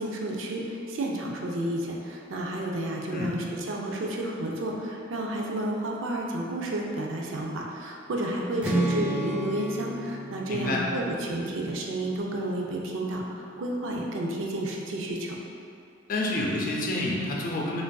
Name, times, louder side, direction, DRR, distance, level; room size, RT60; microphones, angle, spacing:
voice 1, 0.0-15.3, right 1 dB, 70° right, -1 dB, 0.5 m, -31 dB
Strum, 8.6-12.7, right 1 dB, 5° right, 0.4 m, -33 dB
voice 2, 10.5-10.8 16.1-17.8, left 2 dB, 45° left, -2 dB, 0.5 m, -28 dB
6.0 x 2.5 x 2.3 m, 2.5 s
head